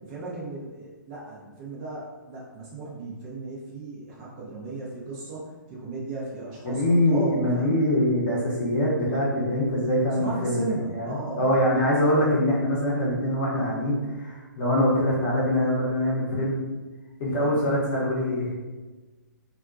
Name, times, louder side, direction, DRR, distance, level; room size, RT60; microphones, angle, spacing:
voice 1, 0.0-7.8 10.1-12.0 17.4-17.6, right 2 dB, 25° right, -5 dB, 0.5 m, -36 dB
voice 2, 6.6-16.6 17.2-18.6, left 1 dB, 30° left, -6 dB, 0.8 m, -24 dB
2.3 x 2.1 x 2.5 m, 1.2 s
figure-of-eight pair, 130°, 11 cm